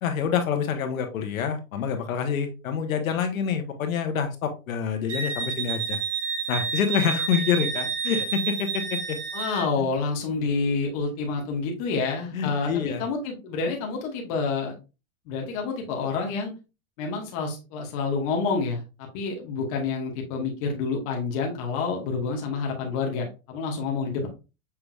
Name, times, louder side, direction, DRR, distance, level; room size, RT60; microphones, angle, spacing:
voice 1, 0.0-6.0 6.5-9.2 9.8-9.9 12.3-13.0, left 7 dB, 75° left, 6 dB, 1.1 m, -27 dB
Wind instrument woodwind instrument, 5.1-9.6, right 6 dB, 60° right, 2.1 m, -30 dB
voice 2, 9.3-14.7 15.3-16.5 17.0-24.3, left 4 dB, 25° left, 1 dB, 0.9 m, -28 dB
5.9 x 3.4 x 2.3 m, 0.29 s
supercardioid pair, 165°, 41 cm